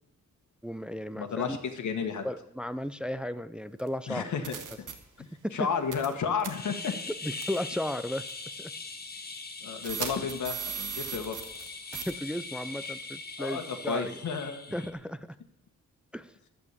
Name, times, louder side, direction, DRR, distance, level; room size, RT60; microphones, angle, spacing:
voice 1, 0.6-1.6 2.2-4.3 5.4-5.7 6.9-8.3 8.6-8.7 12.1-14.2 14.7-15.3 16.1-16.3, left 1 dB, 5° right, 13 dB, 0.5 m, -35 dB
voice 2, 1.1-2.2 4.1-4.9 5.2-6.9 9.6-11.4 13.4-14.7, left 6 dB, 65° left, 5 dB, 1.6 m, -32 dB
sound 1, 3.8-3.9 4.4-4.9 5.9-6.1 6.4-6.5 7.4-7.6 8.3-8.4 9.8-11.7 11.9-12.1, right 9 dB, 80° right, 1.8 m, -36 dB
sound 2, 6.5-14.9, left 4 dB, 30° left, 1.4 m, -41 dB
11.5 x 8.7 x 8.3 m, 0.80 s
wide cardioid pair, 155°, 31 cm